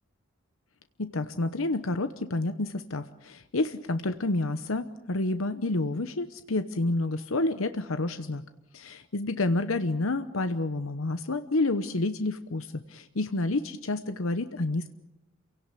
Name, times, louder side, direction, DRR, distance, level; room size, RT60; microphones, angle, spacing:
voice 1, 1.0-8.4 8.7-14.9, left 2 dB, 80° left, 10 dB, 1.0 m, -29 dB
28.0 x 17.5 x 8.3 m, 0.91 s
head